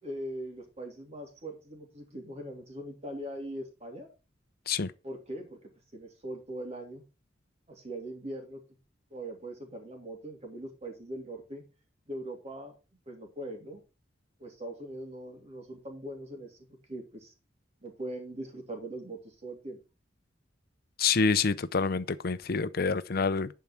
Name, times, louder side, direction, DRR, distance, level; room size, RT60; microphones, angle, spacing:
voice 1, 0.0-4.1 5.0-7.0 7.7-8.6 9.1-11.6 12.1-12.8 13.1-13.8 14.4-17.3 17.8-19.8, right 1 dB, 35° right, 3.0 m, -41 dB
voice 2, 21.0-23.6, left 5 dB, 55° left, 0.6 m, -27 dB
10.5 x 4.7 x 5.8 m
head